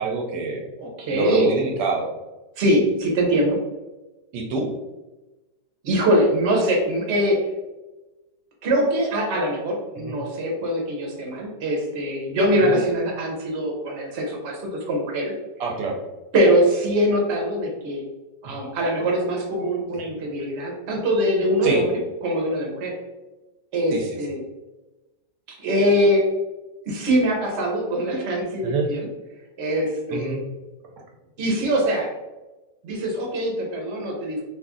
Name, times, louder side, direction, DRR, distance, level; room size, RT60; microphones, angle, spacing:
voice 1, 0.0-0.6 1.1-2.1 4.3-4.7 10.0-10.2 12.6-12.7 15.6-16.0 18.4-18.5 19.9-20.0 21.6-21.8 23.9-24.1 28.6-28.9 30.1-30.4, right 3 dB, 80° right, 1 dB, 1.2 m, -26 dB
voice 2, 0.8-1.5 2.6-3.6 5.8-7.4 8.6-14.6 14.9-15.3 16.3-18.0 18.4-22.9 23.7-24.4 25.6-26.2 26.9-29.1 29.6-30.4 31.4-32.1 32.8-34.4, equal, 50° right, -1 dB, 0.9 m, -22 dB
2.8 x 2.5 x 3.6 m, 1.1 s
omnidirectional pair, 1.9 m